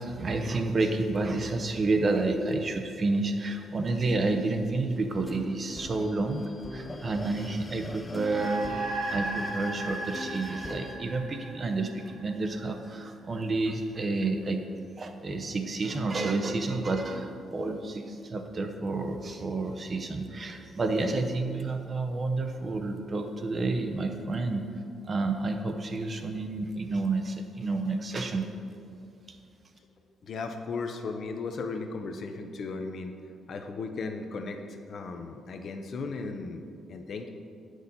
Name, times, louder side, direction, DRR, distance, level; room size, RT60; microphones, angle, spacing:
voice 1, 0.0-14.6 15.0-24.7 25.0-28.5, right 3 dB, 40° right, 6 dB, 0.7 m, -30 dB
sound 1, 5.0-11.0, left 1 dB, 20° left, 0.5 m, -42 dB
sound 2, 8.2-12.9, right 2 dB, 80° right, 1.5 m, -36 dB
voice 2, 30.2-33.2 33.5-37.3, left 4 dB, 55° left, 5 dB, 0.7 m, -36 dB
8.3 x 6.3 x 4.1 m, 2.4 s
cardioid pair, 90°, 0 cm